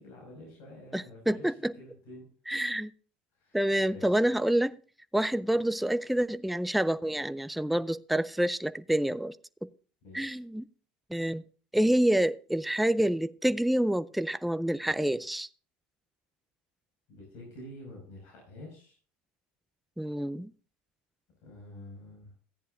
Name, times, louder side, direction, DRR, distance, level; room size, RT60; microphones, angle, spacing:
voice 1, 0.0-1.5 1.8-2.3 3.3-4.2 10.0-10.4 17.1-19.0 21.4-22.3, left 1 dB, 60° left, 5.7 m, -48 dB
voice 2, 0.9-1.7 2.5-2.9 3.5-4.8 5.1-9.4 10.1-10.6 11.1-11.4 11.7-15.5 20.0-20.5, right 1 dB, ahead, 0.4 m, -27 dB
14.5 x 10.0 x 2.6 m
supercardioid pair, 95°, 5 cm